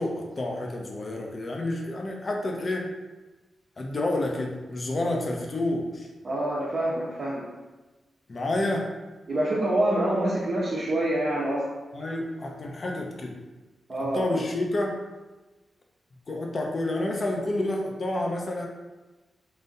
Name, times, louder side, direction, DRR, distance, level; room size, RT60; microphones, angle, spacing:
voice 1, 0.0-2.9 3.8-6.1 8.3-8.9 11.9-13.4 14.0-15.0 16.3-18.7, left 1 dB, 45° left, 1 dB, 0.9 m, -29 dB
voice 2, 6.2-7.5 9.3-11.7 13.9-14.2, right 1 dB, 55° right, -8 dB, 1.0 m, -26 dB
4.0 x 2.6 x 4.0 m, 1.2 s
cardioid pair, 55°, 0 cm